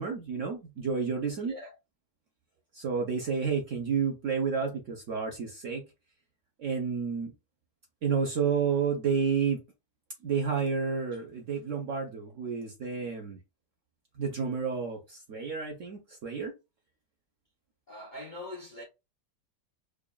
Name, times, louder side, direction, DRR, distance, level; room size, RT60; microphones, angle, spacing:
voice 1, 0.0-1.5 2.7-5.8 6.6-7.3 8.0-9.6 10.2-13.4 14.2-16.5, right 6 dB, 60° right, 0.9 m, -30 dB
voice 2, 1.4-1.7 17.9-18.8, left 1 dB, 45° left, 0.6 m, -42 dB
4.9 x 2.5 x 2.3 m
omnidirectional pair, 2.0 m